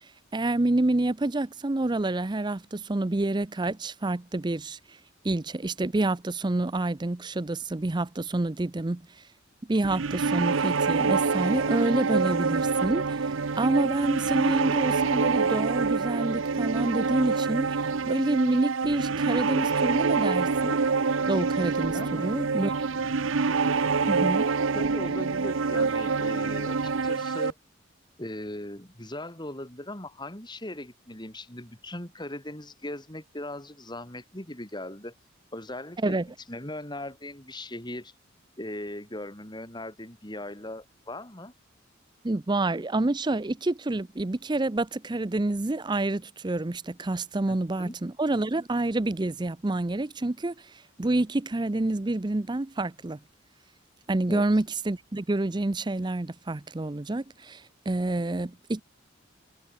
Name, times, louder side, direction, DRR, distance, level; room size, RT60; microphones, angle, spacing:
voice 1, 0.3-4.8 5.2-9.0 9.7-13.3 13.6-17.8 18.1-20.8 21.3-22.7 24.1-24.5 36.0-36.3 42.2-50.5 51.0-53.2 54.1-58.8, right 2 dB, 20° right, 0.5 m, -28 dB
sound 1, 9.8-27.5, right 4 dB, 75° right, 0.8 m, -26 dB
voice 2, 21.9-22.3 24.7-27.6 28.2-35.1 35.5-36.2 36.5-38.1 38.6-41.5 47.5-47.9 54.3-54.4, left 1 dB, 20° left, 4.9 m, -39 dB
head